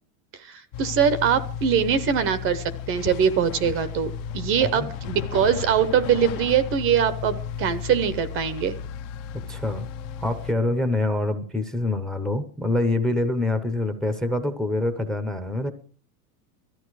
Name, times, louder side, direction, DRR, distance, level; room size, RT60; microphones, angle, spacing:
voice 1, 0.4-8.8, right 8 dB, 30° right, 15 dB, 0.8 m, -23 dB
sound 1, 0.7-10.5, left 8 dB, 35° left, 0.8 m, -34 dB
voice 2, 4.6-4.9 9.5-9.9 10.2-15.7, left 2 dB, ahead, 11 dB, 0.8 m, -25 dB
17.5 x 13.5 x 4.7 m, 0.40 s
supercardioid pair, 165°, 45 cm